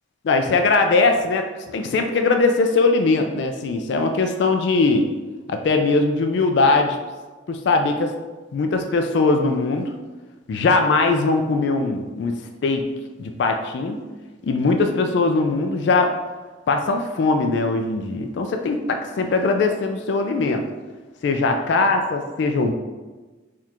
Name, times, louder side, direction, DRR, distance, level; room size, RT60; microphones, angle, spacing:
voice 1, 0.2-5.1 5.5-7.0 7.5-8.1 8.5-9.9 10.5-12.3 12.6-12.8 13.2-14.0 14.4-16.2 16.7-20.6 21.2-22.7, left 3 dB, 65° left, 5 dB, 0.3 m, -20 dB
3.6 x 2.4 x 4.3 m, 1.2 s
head